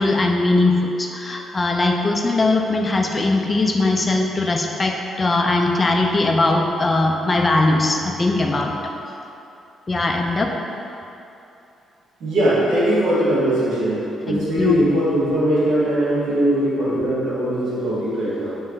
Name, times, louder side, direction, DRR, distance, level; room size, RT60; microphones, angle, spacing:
voice 1, 0.0-8.9 9.9-10.5 14.3-14.9, left 2 dB, 25° left, 2 dB, 0.3 m, -20 dB
voice 2, 12.2-18.5, equal, 75° right, -9 dB, 1.4 m, -20 dB
3.6 x 3.1 x 3.8 m, 2.8 s
cardioid pair, 90°, 0 cm